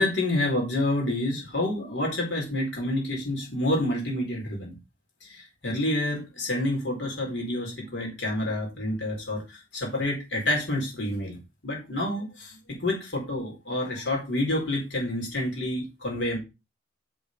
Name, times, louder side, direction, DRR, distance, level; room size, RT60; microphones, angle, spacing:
voice 1, 0.0-4.8 5.2-16.4, left 1 dB, 80° left, -2 dB, 4.3 m, -28 dB
6.1 x 5.7 x 5.2 m, 0.26 s
head